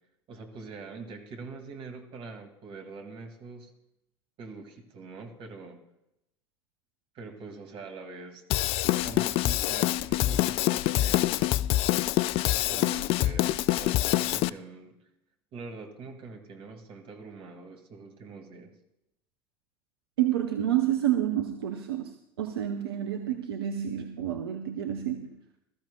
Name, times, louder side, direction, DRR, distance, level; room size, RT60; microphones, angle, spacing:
voice 1, 0.3-3.7 4.4-5.8 7.1-8.4 9.0-11.6 12.6-15.0 15.5-18.7, right 4 dB, 45° right, 4 dB, 2.3 m, -44 dB
Drum kit / Drum, 8.5-14.5, left 15 dB, 45° left, 0.4 m, -25 dB
voice 2, 20.2-25.4, right 11 dB, 70° right, 5 dB, 0.9 m, -29 dB
20.5 x 13.5 x 2.3 m, 0.82 s
figure-of-eight pair, 70°, 13 cm